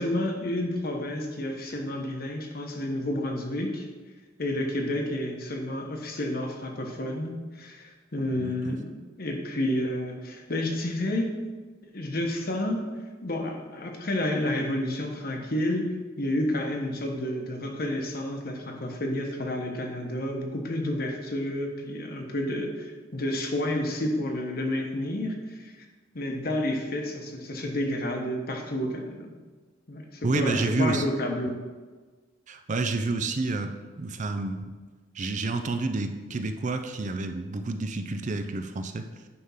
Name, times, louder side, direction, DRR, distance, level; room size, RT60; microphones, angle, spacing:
voice 1, 0.0-3.9 4.4-11.4 11.8-25.7 26.1-29.3 29.9-31.6, left 1 dB, 55° left, 2 dB, 1.2 m, -30 dB
voice 2, 8.4-8.7 30.2-31.0 32.5-34.7 35.1-39.1, right 3 dB, 40° right, 8 dB, 0.5 m, -29 dB
9.7 x 3.7 x 5.6 m, 1.3 s
head